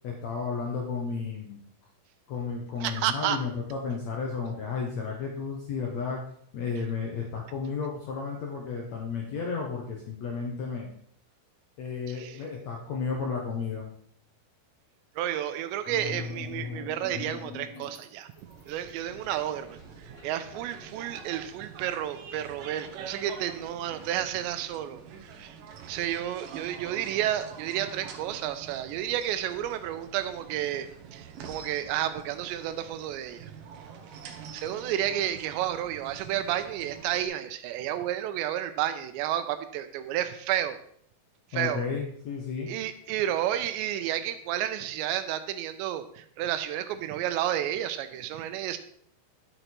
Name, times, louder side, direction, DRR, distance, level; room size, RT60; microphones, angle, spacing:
voice 1, 0.0-1.6 2.3-6.2 6.5-10.9 11.8-13.9 41.5-42.7, left 5 dB, 80° left, 0 dB, 1.5 m, -33 dB
voice 2, 2.8-3.4 12.1-12.4 15.2-18.3 18.7-19.8 20.2-25.6 25.9-30.9 31.1-33.5 34.5-40.8 41.5-41.9 42.7-48.8, right 11 dB, 90° right, 9 dB, 2.9 m, -31 dB
sound 1, 15.9-18.0 18.3-21.7, left 5 dB, 60° left, 1.7 m, -41 dB
sound 2, 18.4-37.2, right 6 dB, 75° right, 2.0 m, -46 dB
11.0 x 6.6 x 4.5 m, 0.64 s
omnidirectional pair, 5.1 m